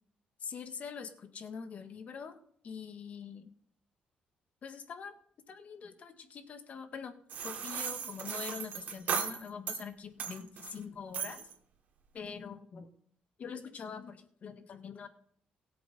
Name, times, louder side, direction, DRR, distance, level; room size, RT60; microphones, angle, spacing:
voice 1, 0.4-2.4 2.6-3.5 4.6-5.1 5.5-11.5 12.1-12.9 13.4-15.1, left 6 dB, 50° left, 8 dB, 1.6 m, -44 dB
sound 1, 7.3-9.8 10.2-10.8 11.1-11.5, right 7 dB, 60° right, 2.9 m, -37 dB
17.5 x 7.8 x 4.2 m, 0.62 s
cardioid pair, 95°, 3 cm